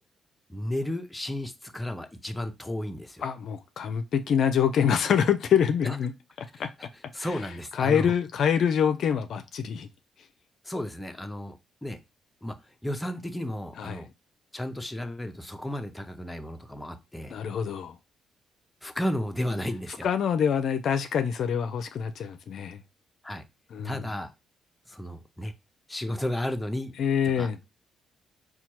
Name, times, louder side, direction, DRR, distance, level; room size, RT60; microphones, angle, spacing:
voice 1, 0.5-3.3 5.8-6.0 6.6-6.9 7.1-8.1 10.6-12.0 12.4-14.1 14.5-17.3 18.8-20.1 23.2-23.4 23.8-24.3 24.9-25.5 25.9-26.9 27.2-27.5, left 1 dB, 10° left, 0.5 m, -33 dB
voice 2, 3.2-6.1 6.6-6.7 7.2-7.3 7.8-9.9 13.8-14.0 17.3-18.0 20.0-22.8 23.7-24.0 27.0-27.6, left 8 dB, 65° left, 0.4 m, -25 dB
4.3 x 2.2 x 2.9 m
cardioid pair, 90°, 0 cm